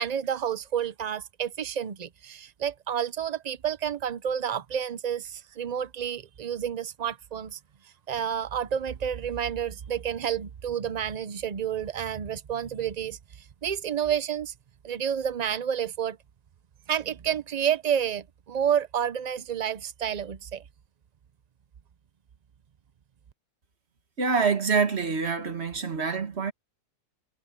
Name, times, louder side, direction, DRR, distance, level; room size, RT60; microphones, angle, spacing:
voice 1, 0.0-7.6 8.1-13.2 13.6-14.5 14.8-16.2 16.9-20.6, right 8 dB, 70° right, 0.4 m, -30 dB
voice 2, 24.2-26.5, right 5 dB, 45° right, 1.8 m, -26 dB
omnidirectional pair, 1.6 m